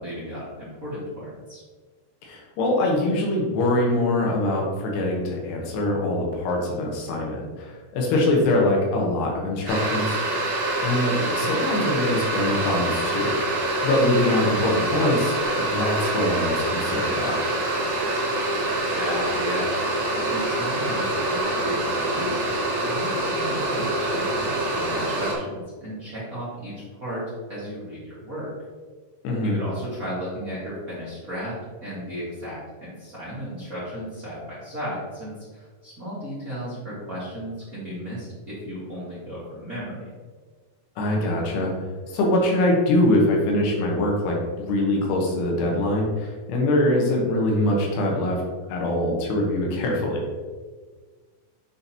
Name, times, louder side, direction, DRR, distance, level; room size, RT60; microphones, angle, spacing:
voice 1, 0.0-1.6 18.9-19.7 20.1-22.3 22.8-28.5 29.4-40.1, equal, 45° right, -10 dB, 1.1 m, -34 dB
voice 2, 2.2-10.2 10.8-13.3 13.8-17.4 29.2-29.6 41.0-41.7 42.1-48.4 48.7-50.2, left 1 dB, 85° left, -1 dB, 3.2 m, -23 dB
sound 1, 9.7-25.3, right 2 dB, 60° right, 1.3 m, -25 dB
9.6 x 4.1 x 2.9 m, 1.4 s
omnidirectional pair, 4.7 m